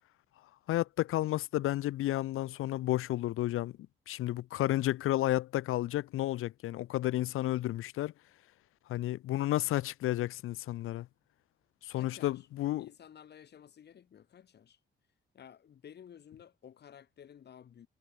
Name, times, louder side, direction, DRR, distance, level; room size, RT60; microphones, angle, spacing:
voice 1, 0.7-3.7 4.1-8.1 8.9-11.1 11.8-12.9, left 15 dB, 85° left, 0.5 m, -32 dB
voice 2, 12.0-12.5 12.8-14.8 15.3-17.9, left 9 dB, 50° left, 2.5 m, -54 dB
wide cardioid pair, 165°, 21 cm